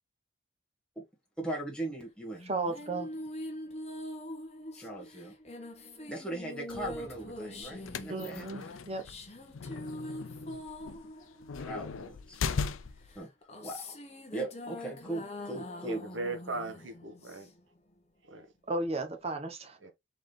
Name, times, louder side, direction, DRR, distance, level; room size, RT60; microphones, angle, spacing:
voice 1, 1.4-2.4 4.7-5.3 6.1-8.7 11.6-12.4 13.1-13.3 13.6-14.0 14.3-16.0, right 2 dB, 5° left, 1.5 m, -39 dB
sound 1, 2.3-12.3 13.1-17.8, left 1 dB, 30° left, 1.1 m, -44 dB
voice 2, 2.5-3.1 8.1-9.0 18.7-19.8, right 2 dB, 30° right, 0.9 m, -34 dB
sound 2, 6.7-8.3, left 1 dB, 65° left, 1.3 m, -52 dB
sound 3, 7.6-13.2, left 5 dB, 90° left, 0.5 m, -38 dB
voice 3, 15.8-17.5 18.3-18.5 19.8-19.9, right 3 dB, 75° right, 1.2 m, -38 dB
4.1 x 3.7 x 3.2 m
head